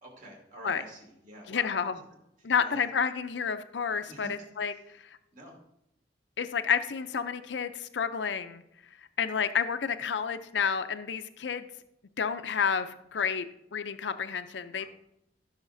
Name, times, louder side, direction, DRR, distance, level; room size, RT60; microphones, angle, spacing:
voice 1, 0.0-1.8 2.4-2.9 4.1-4.4 4.7-4.8 5.3-5.6 14.6-14.9, equal, 50° right, -1 dB, 2.6 m, -48 dB
voice 2, 1.5-1.9 2.4-4.7 6.4-8.6 9.2-11.7 12.2-13.5 13.7-14.9, left 6 dB, 85° left, 11 dB, 0.5 m, -30 dB
15.5 x 6.4 x 2.6 m, 0.82 s
head